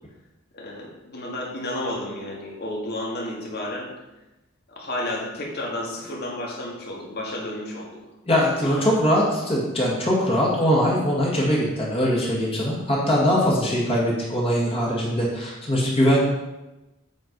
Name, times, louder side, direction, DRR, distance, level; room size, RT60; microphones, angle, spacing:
voice 1, 0.5-3.9 4.7-8.0 8.8-9.0, left 1 dB, 50° left, -2 dB, 2.0 m, -32 dB
voice 2, 8.3-16.2, equal, 30° left, -5 dB, 1.9 m, -21 dB
8.4 x 4.6 x 5.3 m, 1.0 s
head